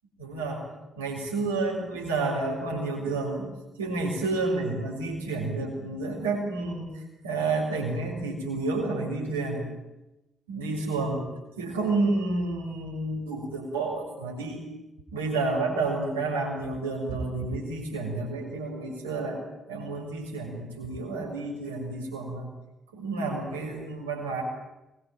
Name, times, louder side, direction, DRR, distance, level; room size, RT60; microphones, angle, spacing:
voice 1, 0.2-0.6 1.0-3.5 3.8-9.6 10.5-11.2 11.6-14.6 15.1-19.4 19.7-22.5 22.9-24.4, right 3 dB, 80° right, -1 dB, 6.5 m, -30 dB
24.0 x 22.5 x 9.4 m, 0.99 s
figure-of-eight pair, 40°, 0 cm